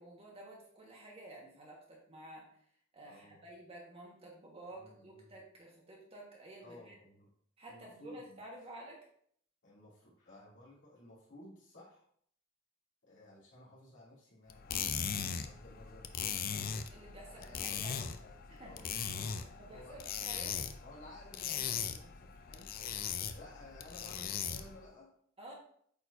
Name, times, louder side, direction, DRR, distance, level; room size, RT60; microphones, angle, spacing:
voice 1, 0.0-2.4 2.9-6.9 7.6-9.1 16.9-18.0 18.5-18.7 19.6-20.6 25.4-25.5, right 1 dB, 30° right, -2 dB, 1.6 m, -51 dB
voice 2, 3.0-3.4 4.7-5.4 6.6-7.3 7.7-8.4 9.6-12.1 13.0-16.7 17.2-20.3 20.8-22.8 23.3-25.1, left 1 dB, 60° left, -7 dB, 2.8 m, -56 dB
sound 1, 14.5-24.8, left 7 dB, 45° left, 0.4 m, -39 dB
8.4 x 4.4 x 2.7 m, 0.64 s
head